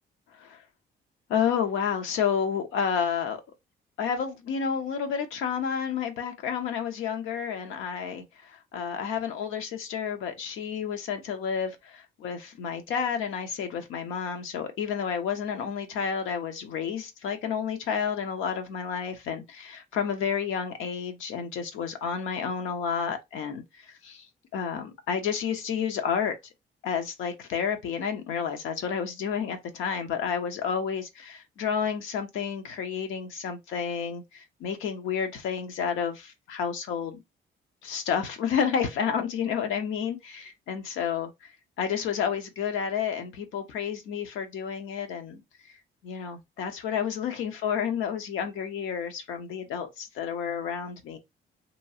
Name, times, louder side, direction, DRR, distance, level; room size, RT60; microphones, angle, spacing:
voice 1, 1.3-3.4 4.0-24.3 24.5-26.3 26.8-37.2 37.8-41.5 41.8-45.4 45.7-45.8 46.0-51.2, left 7 dB, 90° left, 0.7 m, -30 dB
3.0 x 2.3 x 2.7 m
cardioid pair, 90°, 20 cm